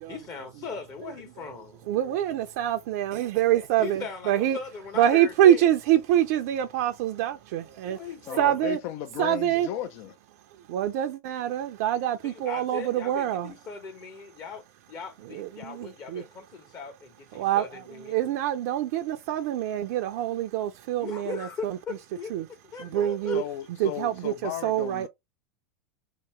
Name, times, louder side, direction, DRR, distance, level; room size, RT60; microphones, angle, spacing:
voice 1, 0.1-1.9 3.8-5.6 7.9-8.5 12.2-18.2 21.0-22.3 22.7-23.4, left 5 dB, 45° left, 1.2 m, -39 dB
voice 2, 1.9-4.6 5.0-8.1 8.4-8.8 9.2-9.9 10.5-13.5 15.2-16.2 17.3-21.8 22.3-22.5 22.8-23.4 23.8-25.1, right 11 dB, 65° right, 0.5 m, -25 dB
voice 3, 8.3-10.1 23.3-25.1, left 12 dB, 60° left, 0.5 m, -35 dB
2.9 x 2.9 x 4.4 m
hypercardioid pair, 95°, 9 cm